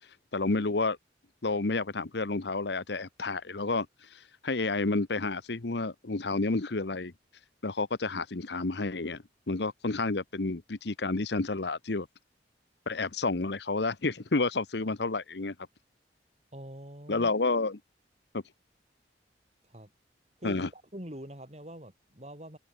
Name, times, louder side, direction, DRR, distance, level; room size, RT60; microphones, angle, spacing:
voice 1, 0.3-1.0 1.4-3.9 4.1-7.1 7.6-12.1 12.9-15.5 17.1-17.8 18.3-18.4 20.4-20.7, left 3 dB, 70° left, 1.0 m, -30 dB
voice 2, 16.5-17.3 19.6-19.9 20.4-22.6, equal, 35° right, 6.0 m, -44 dB
head